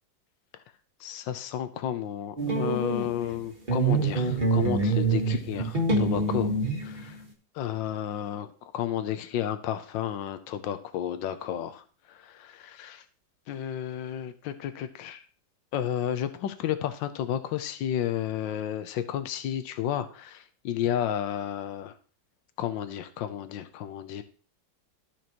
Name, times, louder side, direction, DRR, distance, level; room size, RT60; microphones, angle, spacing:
voice 1, 1.0-6.5 6.8-7.2 7.5-13.0 13.5-15.2 15.7-21.9 22.6-24.2, left 10 dB, 85° left, 10 dB, 1.4 m, -32 dB
sound 1, 2.4-3.4 3.7-7.2, right 3 dB, 30° right, 1.7 m, -26 dB
13.0 x 6.1 x 3.0 m, 0.39 s
omnidirectional pair, 2.0 m